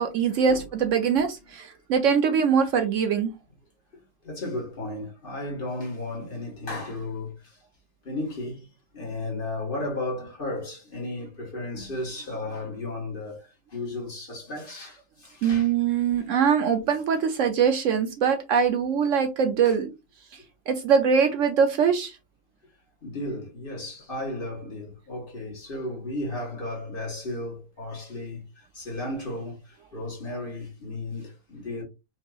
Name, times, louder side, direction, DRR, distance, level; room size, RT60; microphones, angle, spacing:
voice 1, 0.0-3.3 15.4-19.9 20.7-22.2, right 6 dB, 65° right, 0.9 m, -22 dB
voice 2, 4.2-7.6 8.0-8.7 8.9-15.7 16.2-16.3 19.6-19.7 23.0-31.8, left 2 dB, 40° left, 1.5 m, -34 dB
4.6 x 2.8 x 2.3 m
omnidirectional pair, 1.5 m